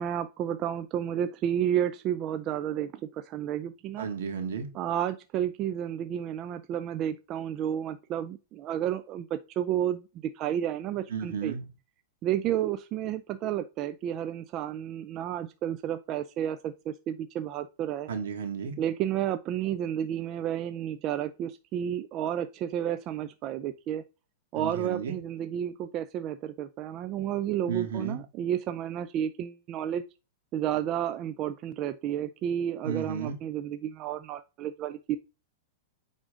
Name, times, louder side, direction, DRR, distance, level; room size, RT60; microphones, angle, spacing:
voice 1, 0.0-4.1 4.7-11.6 12.2-18.1 18.8-24.0 24.5-30.0 30.5-35.2, right 10 dB, 35° right, 0.4 m, -31 dB
voice 2, 4.0-4.7 11.1-11.7 18.1-18.8 24.5-25.2 27.7-28.2 32.8-33.4, right 6 dB, 75° right, 2.0 m, -33 dB
8.6 x 3.8 x 3.6 m
hypercardioid pair, 145°, 0 cm